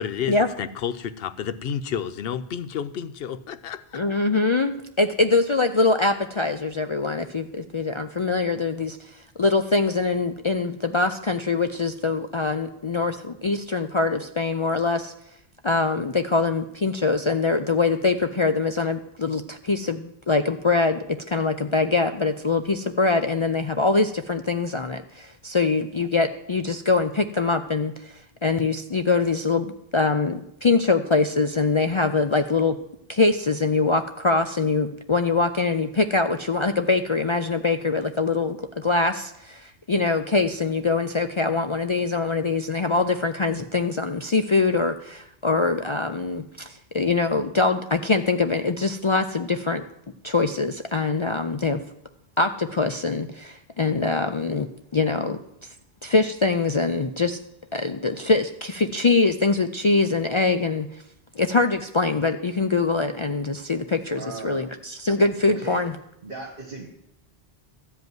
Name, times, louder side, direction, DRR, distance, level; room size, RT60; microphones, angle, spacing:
voice 1, 0.0-4.0, left 8 dB, 65° left, 13 dB, 0.8 m, -30 dB
voice 2, 3.9-15.1 15.6-32.8 33.1-49.8 50.2-51.8 52.4-55.7 56.0-57.4 57.7-61.0 61.3-66.0, left 3 dB, 45° left, 8 dB, 0.4 m, -23 dB
voice 3, 64.1-64.7 65.5-65.9 66.2-66.9, right 3 dB, 55° right, -1 dB, 1.8 m, -37 dB
13.0 x 5.3 x 9.3 m, 0.78 s
omnidirectional pair, 1.1 m